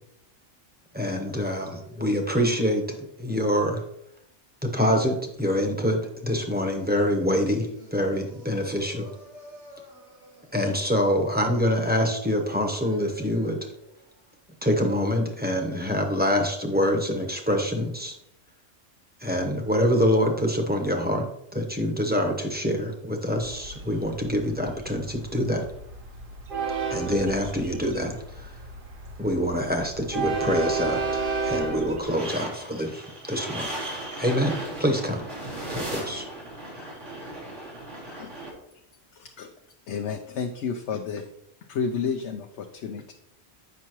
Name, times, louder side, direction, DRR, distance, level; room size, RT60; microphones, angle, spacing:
voice 1, 0.9-2.8 3.2-3.8 4.6-9.1 10.5-13.6 14.6-18.2 19.2-25.6 26.9-28.5 29.2-33.7 34.2-35.3 35.7-36.3, equal, 10° right, 0.9 m, -25 dB
voice 2, 8.5-10.4 12.5-13.5, right 2 dB, 70° right, 2.1 m, -46 dB
Train, 23.4-32.0, right 4 dB, 50° right, 1.1 m, -32 dB
sound 1, 32.0-38.5, right 1 dB, 90° right, 3.1 m, -36 dB
voice 3, 39.1-39.5 39.9-41.3 41.7-43.1, left 6 dB, 75° left, 0.9 m, -31 dB
8.1 x 5.7 x 3.0 m
omnidirectional pair, 1.2 m